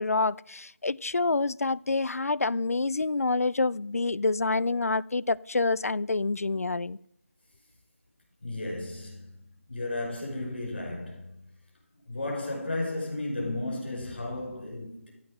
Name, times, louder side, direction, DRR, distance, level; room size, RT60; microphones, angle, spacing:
voice 1, 0.0-7.0, left 3 dB, 85° left, 0.4 m, -27 dB
voice 2, 8.4-9.3 9.7-11.4 12.1-15.1, left 2 dB, 45° left, 5.2 m, -34 dB
14.0 x 8.9 x 6.6 m
figure-of-eight pair, 180°, 8 cm